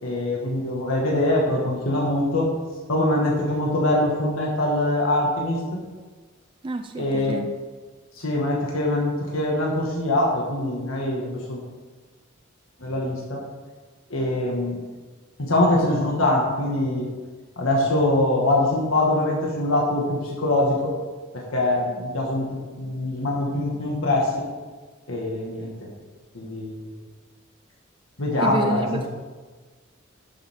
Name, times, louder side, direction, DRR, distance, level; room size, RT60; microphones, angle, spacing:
voice 1, 0.0-2.6 2.9-5.8 7.0-7.4 8.2-11.6 12.8-13.4 14.1-14.8 15.4-17.1 17.6-21.0 21.3-22.5 22.8-24.5 25.1-25.9 26.3-26.9 28.2-29.1, left 1 dB, 90° left, -2 dB, 1.8 m, -23 dB
voice 2, 6.6-7.5 28.4-29.1, right 2 dB, 25° right, 6 dB, 0.3 m, -28 dB
11.0 x 7.2 x 3.7 m, 1.4 s
head